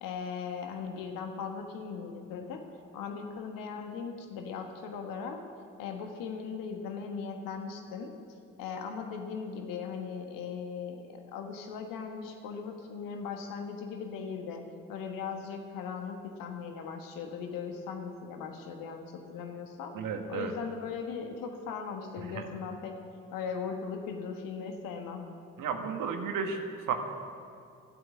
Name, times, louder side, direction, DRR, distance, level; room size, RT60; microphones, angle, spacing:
voice 1, 0.0-2.6 2.9-5.4 5.8-8.1 8.6-20.0 20.3-23.0 23.3-25.3, left 6 dB, 70° left, 4 dB, 1.5 m, -38 dB
voice 2, 19.9-20.5 22.2-22.5 25.6-26.9, right 6 dB, 65° right, 5 dB, 1.5 m, -33 dB
13.0 x 8.0 x 9.4 m, 2.4 s
hypercardioid pair, 40°, 35 cm